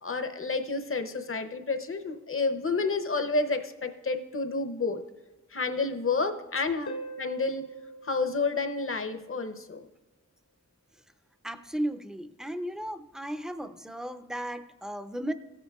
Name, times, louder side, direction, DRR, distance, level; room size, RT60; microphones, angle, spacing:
voice 1, 0.0-5.0 5.5-7.7 8.0-9.9, left 3 dB, 45° left, 8 dB, 0.7 m, -30 dB
Harp, 6.9-9.4 12.9-13.0, right 2 dB, 75° left, 1.0 m, -42 dB
voice 2, 11.4-15.3, equal, ahead, 9 dB, 0.5 m, -35 dB
15.5 x 8.2 x 2.4 m, 1.1 s
wide cardioid pair, 90°, 29 cm